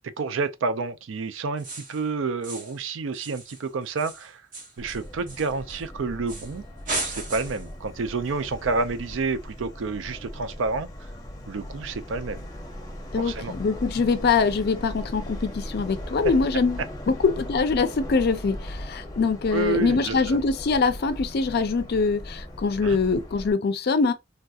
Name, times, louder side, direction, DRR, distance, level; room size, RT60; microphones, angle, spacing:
voice 1, 0.2-4.4 4.8-6.6 7.0-10.9 11.5-12.4 13.2-13.5 19.5-20.4 22.8-23.0, right 4 dB, 70° right, 0.4 m, -29 dB
sound 1, 1.6-2.0 2.4-2.8 3.1-5.8 6.3-6.6 6.9-7.7, right 2 dB, 45° right, 0.9 m, -35 dB
Subway metro underground, 4.8-23.5, equal, 20° left, 0.7 m, -38 dB
voice 2, 13.1-24.1, left 4 dB, 55° left, 0.5 m, -23 dB
3.3 x 2.7 x 2.3 m
head